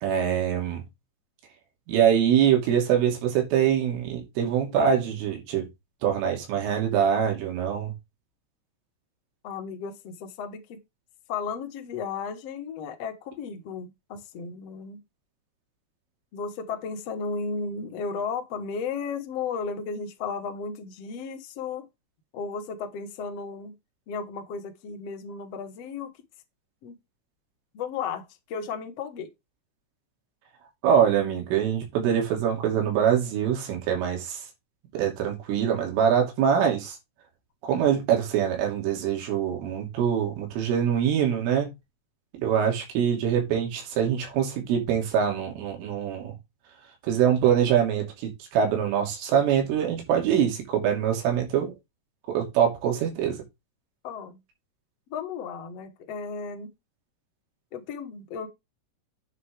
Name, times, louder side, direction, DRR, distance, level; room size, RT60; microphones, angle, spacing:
voice 1, 0.0-0.8 1.9-5.7 6.0-7.9 30.8-34.4 34.9-37.0 37.6-41.7 42.3-46.3 47.1-51.7 52.3-53.4, right 8 dB, 80° right, 5.3 m, -24 dB
voice 2, 9.4-10.8 11.3-15.0 16.3-21.9 22.3-23.7 24.1-26.1 26.8-27.0 27.7-29.3 54.0-54.4 55.1-56.7 57.7-58.5, left 5 dB, 85° left, 1.4 m, -34 dB
8.4 x 8.3 x 3.5 m
omnidirectional pair, 5.7 m